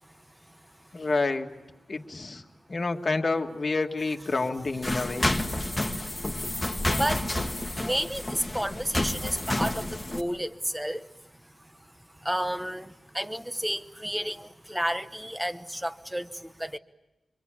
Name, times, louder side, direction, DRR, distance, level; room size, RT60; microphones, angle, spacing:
voice 1, 0.9-1.5 1.9-2.4 2.7-5.3, left 3 dB, 35° left, 4 dB, 1.8 m, -28 dB
sound 1, 4.8-10.2, left 1 dB, 15° left, 1.7 m, -30 dB
voice 2, 5.6-11.1 11.6-11.8 12.2-16.8, equal, 5° right, 10 dB, 1.0 m, -32 dB
26.5 x 24.5 x 8.5 m, 0.98 s
wide cardioid pair, 180°, 0 cm